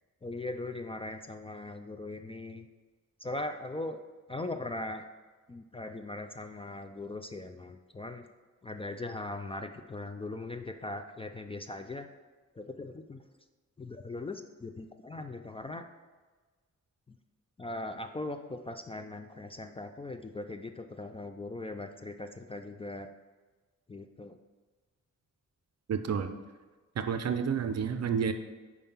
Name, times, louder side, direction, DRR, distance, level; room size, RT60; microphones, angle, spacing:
voice 1, 0.2-2.7 3.2-4.0 4.3-5.1 5.5-8.3 8.6-12.1 12.5-13.2 13.8-15.8 17.1-17.2 17.6-23.1 23.9-24.4, left 2 dB, 20° left, 7 dB, 0.3 m, -40 dB
voice 2, 25.9-26.3 27.0-28.3, right 7 dB, 55° right, 9 dB, 0.6 m, -30 dB
5.5 x 4.8 x 5.5 m, 1.3 s
wide cardioid pair, 125°, 30 cm